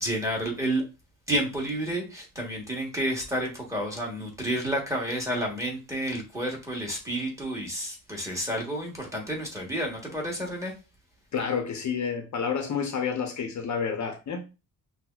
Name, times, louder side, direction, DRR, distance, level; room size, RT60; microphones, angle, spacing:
voice 1, 0.0-0.8 1.3-10.7, right 1 dB, 10° right, 1.1 m, -30 dB
voice 2, 11.3-14.4, left 6 dB, 50° left, 0.6 m, -29 dB
5.9 x 2.0 x 2.3 m
wide cardioid pair, 135°, 37 cm